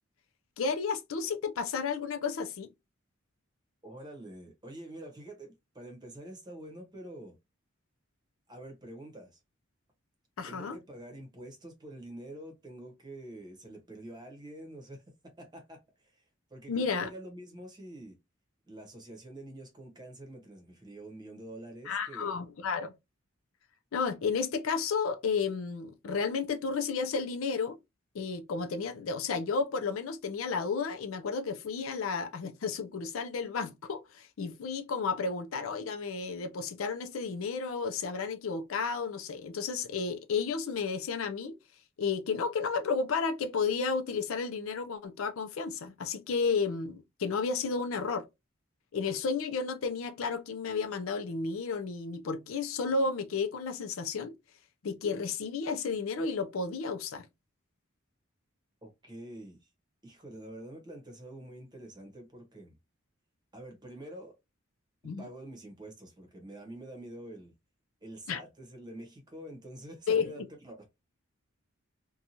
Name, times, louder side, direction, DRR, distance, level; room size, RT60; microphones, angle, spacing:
voice 1, 0.6-2.7 10.4-10.8 16.7-17.1 21.9-22.9 23.9-27.8 28.1-41.6 42.0-48.3 48.9-54.3 54.8-57.3 65.0-65.3 68.3-68.4 70.1-70.4, left 5 dB, 80° left, 0.5 m, -32 dB
voice 2, 3.8-7.4 8.5-9.4 10.5-16.2 16.5-18.2 18.7-22.5 58.8-59.7 60.0-62.8 63.5-64.4 65.2-67.5 68.0-70.8, right 1 dB, 20° right, 0.9 m, -46 dB
2.7 x 2.3 x 2.8 m
head